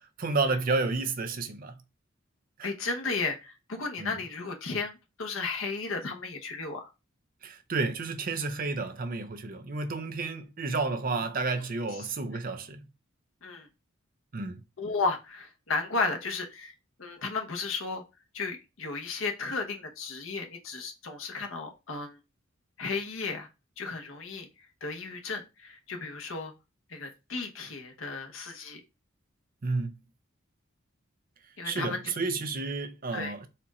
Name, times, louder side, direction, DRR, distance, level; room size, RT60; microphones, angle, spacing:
voice 1, 0.0-1.8 2.6-2.7 4.0-4.1 7.4-12.9 14.3-14.6 29.6-29.9 31.6-33.5, right 3 dB, 45° right, 0.5 m, -31 dB
voice 2, 2.6-6.9 13.4-13.7 14.8-16.7 17.0-18.0 18.3-22.2 22.8-23.5 23.8-24.5 24.8-26.5 26.9-28.8 31.6-32.0 33.1-33.3, left 4 dB, 80° left, 1.0 m, -34 dB
4.3 x 2.5 x 4.0 m
head